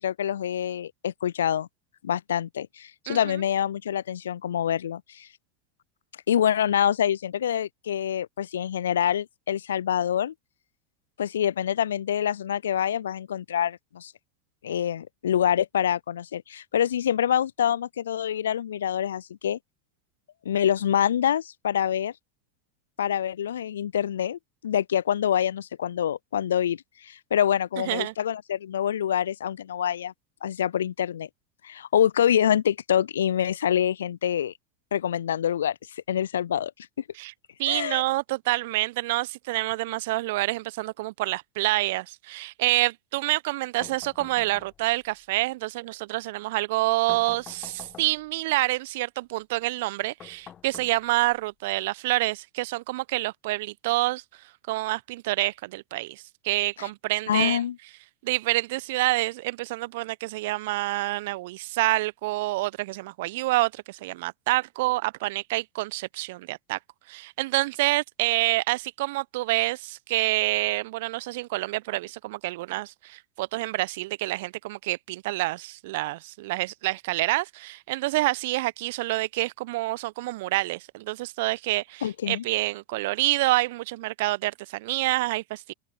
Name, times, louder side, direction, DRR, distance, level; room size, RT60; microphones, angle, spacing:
voice 1, 0.0-1.7 2.0-5.3 6.3-10.3 11.2-14.1 14.6-19.6 20.5-22.1 23.0-30.1 30.4-31.3 31.6-34.5 34.9-35.8 36.1-36.7 37.7-38.0 56.8-56.9 57.3-57.8 82.0-82.4, left 9 dB, 70° left, 0.4 m, -26 dB
voice 2, 37.6-54.2 54.7-57.6 58.2-66.8 67.1-85.7, right 20 dB, 60° right, 1.0 m, -27 dB
sound 1, 43.8-45.1 47.1-48.4 50.2-51.4, left 9 dB, 35° left, 1.6 m, -47 dB
open air
figure-of-eight pair, 80°, 0 cm